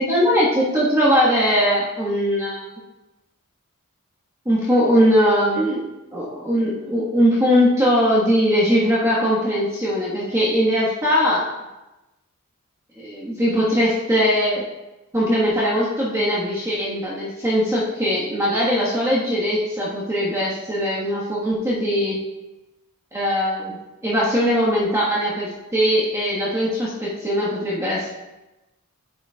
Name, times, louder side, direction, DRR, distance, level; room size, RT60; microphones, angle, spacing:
voice 1, 0.1-2.7 4.4-11.5 13.0-14.6 15.1-22.2 23.1-23.8 24.0-28.1, equal, 15° right, -8 dB, 1.4 m, -20 dB
9.4 x 7.1 x 2.3 m, 1.0 s
head